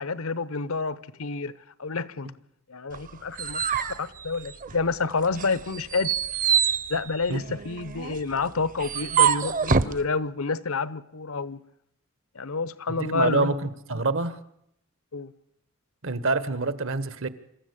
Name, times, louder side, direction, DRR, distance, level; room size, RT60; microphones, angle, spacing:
voice 1, 0.0-1.5 1.8-2.3 2.7-6.1 6.9-11.6 12.3-13.5 15.1-15.3, left 4 dB, 75° left, 0.8 m, -29 dB
sound 1, 2.9-4.9 5.3-10.0, right 7 dB, 40° right, 0.8 m, -26 dB
voice 2, 12.9-14.4 16.0-17.3, right 3 dB, 65° right, 1.3 m, -26 dB
26.0 x 14.0 x 8.3 m
head